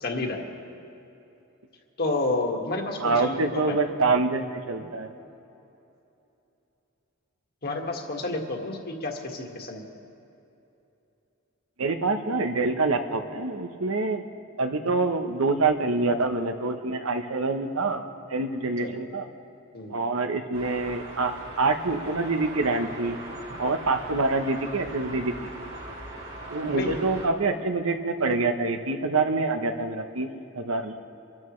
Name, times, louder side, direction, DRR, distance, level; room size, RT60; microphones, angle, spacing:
voice 1, 0.0-0.5 2.0-3.8 7.6-9.8 18.8-18.9 19.7-20.0 26.7-27.0, left 2 dB, 50° left, 1 dB, 1.8 m, -30 dB
voice 2, 3.0-5.1 11.8-14.2 14.6-18.0 18.3-19.3 19.9-23.2 23.6-25.5 26.5-30.3 30.5-30.9, right 3 dB, 85° right, 7 dB, 1.0 m, -26 dB
sound 1, 20.5-27.3, right 2 dB, 60° right, 3.8 m, -40 dB
26.0 x 13.5 x 3.2 m, 2.9 s
head